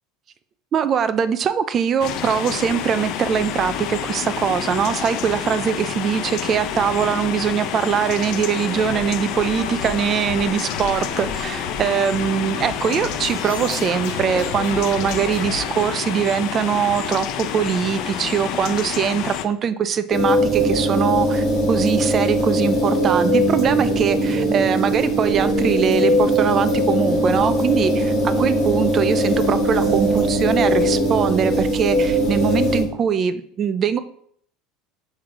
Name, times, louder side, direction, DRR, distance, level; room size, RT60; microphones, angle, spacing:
voice 1, 0.7-34.0, right 7 dB, 25° right, 12 dB, 0.4 m, -22 dB
sound 1, 2.0-19.4, left 9 dB, 45° left, 0.5 m, -28 dB
sound 2, 8.5-15.8, left 3 dB, 70° left, 2.7 m, -34 dB
sound 3, 20.1-32.8, equal, 15° left, 2.4 m, -20 dB
6.4 x 6.0 x 3.7 m, 0.64 s
cardioid pair, 175°, 0 cm